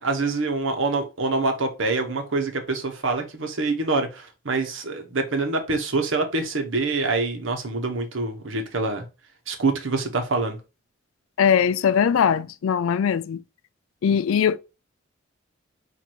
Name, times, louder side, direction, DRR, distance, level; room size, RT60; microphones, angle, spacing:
voice 1, 0.0-9.0 9.5-10.6, right 3 dB, 70° right, 1.0 m, -25 dB
voice 2, 11.4-13.4 14.0-14.6, left 7 dB, 85° left, 0.4 m, -20 dB
4.6 x 2.6 x 4.4 m
head